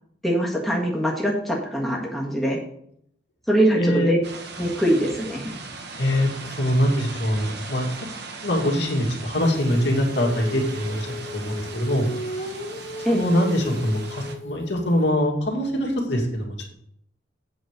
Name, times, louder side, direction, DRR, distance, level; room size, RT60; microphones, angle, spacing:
voice 1, 0.2-2.6 3.5-4.2 4.6-5.5 13.0-13.3, right 1 dB, ahead, -3 dB, 1.6 m, -23 dB
voice 2, 3.8-4.2 6.0-7.9 8.4-11.1 11.3-12.1 13.1-16.7, equal, 65° left, -1 dB, 2.4 m, -23 dB
sound 1, 4.2-14.3, right 4 dB, 60° right, 1.3 m, -39 dB
Female singing, 9.4-15.1, left 2 dB, 40° left, 1.0 m, -36 dB
8.3 x 5.3 x 6.6 m, 0.70 s
head